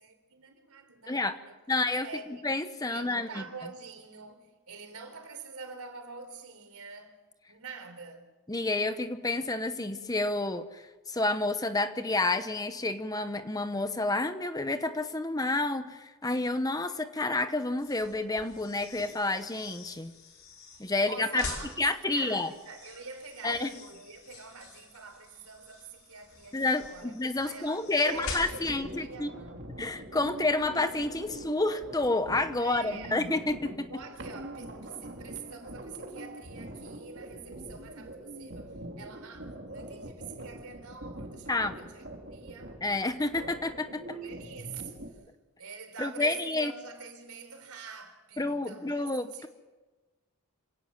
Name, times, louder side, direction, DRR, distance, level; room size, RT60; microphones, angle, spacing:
voice 1, 0.0-1.6 1.8-2.5 2.9-7.2 7.5-8.3 20.9-27.2 27.4-29.6 32.6-33.2 33.9-42.8 44.1-45.3 45.6-49.5, right 5 dB, 85° right, 3.9 m, -46 dB
voice 2, 1.7-2.1 2.4-3.4 8.5-20.1 20.8-21.5 21.8-22.5 23.4-23.7 26.5-29.3 29.8-33.9 41.5-41.7 42.8-44.0 46.0-46.7 48.4-49.5, left 2 dB, 15° left, 0.9 m, -29 dB
sound 1, 17.7-28.9, left 3 dB, 75° left, 5.5 m, -45 dB
sound 2, 28.1-45.1, right 1 dB, 50° right, 2.6 m, -43 dB
26.0 x 17.0 x 7.1 m
head